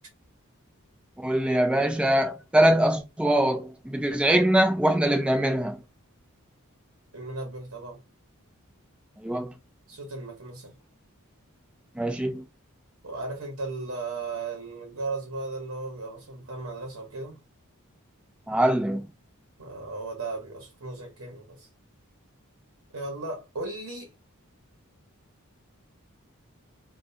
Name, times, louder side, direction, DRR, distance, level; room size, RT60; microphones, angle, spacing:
voice 1, 1.2-5.8 9.2-9.5 12.0-12.4 18.5-19.1, right 1 dB, 5° right, 0.4 m, -23 dB
voice 2, 7.1-8.0 9.9-10.7 13.0-17.4 19.6-21.7 22.9-24.1, right 3 dB, 70° right, 0.9 m, -36 dB
2.3 x 2.3 x 2.7 m
head